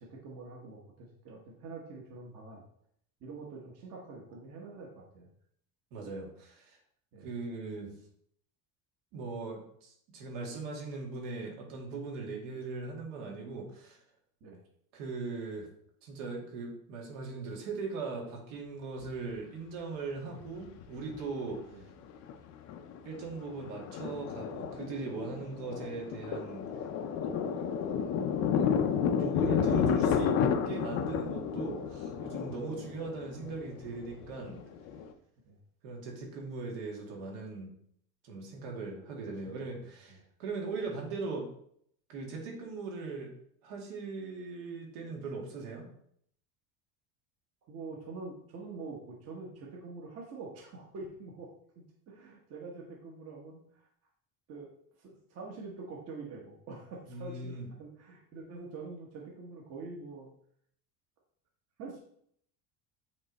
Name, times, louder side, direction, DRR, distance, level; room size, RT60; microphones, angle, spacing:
voice 1, 0.0-2.6 3.2-5.3 7.1-7.3 14.4-14.6 20.2-20.4 21.7-21.8 27.2-27.4 32.7-32.9 35.5-35.6 38.7-38.9 39.2-39.7 47.7-51.5 52.1-53.8 54.5-54.7 55.0-60.3 61.8-62.0, right 3 dB, 35° right, -1 dB, 1.1 m, -45 dB
voice 2, 5.9-6.8 7.2-7.9 9.1-14.0 14.9-15.7 16.0-21.6 23.0-26.7 29.1-30.4 30.6-34.6 35.8-37.7 38.2-41.5 42.1-43.3 43.6-45.9 57.1-57.7, right 3 dB, 80° right, 0 dB, 2.2 m, -39 dB
Thunder, 19.0-19.1 20.5-21.3 21.5-21.6 22.0-22.3 22.7-35.1, left 7 dB, 40° left, 0.5 m, -31 dB
8.5 x 3.3 x 4.0 m, 0.67 s
cardioid pair, 180°, 40 cm